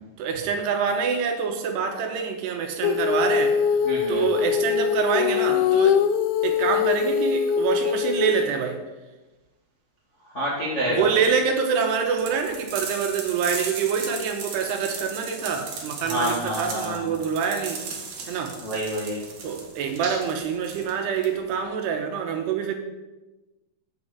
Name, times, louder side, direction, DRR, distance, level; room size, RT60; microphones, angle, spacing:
voice 1, 0.2-3.6 4.1-6.0 6.4-8.8 10.9-17.8 18.3-18.5 19.4-22.7, right 6 dB, 75° right, 4 dB, 2.9 m, -26 dB
Female singing, 2.8-8.5, left 7 dB, 85° left, 2.8 m, -22 dB
voice 2, 3.8-4.2 10.3-11.0 16.1-17.1 18.6-19.2 20.0-20.2, equal, 30° left, -6 dB, 1.2 m, -28 dB
sound 1, 12.2-21.6, right 4 dB, 55° right, 2.3 m, -37 dB
8.1 x 5.9 x 8.0 m, 1.1 s
omnidirectional pair, 5.1 m